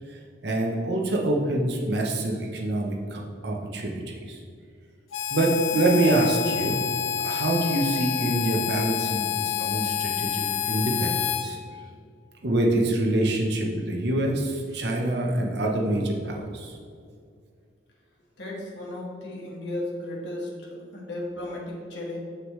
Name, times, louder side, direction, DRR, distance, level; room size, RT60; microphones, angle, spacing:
voice 1, 0.1-4.4 5.3-6.8 7.2-11.6 12.4-16.7, right 1 dB, 55° right, 0 dB, 0.9 m, -26 dB
Harmonica, 5.1-11.5, left 9 dB, 85° left, 0.5 m, -28 dB
voice 2, 18.4-22.2, left 1 dB, 65° left, -3 dB, 1.7 m, -35 dB
7.3 x 6.5 x 3.2 m, 2.2 s
head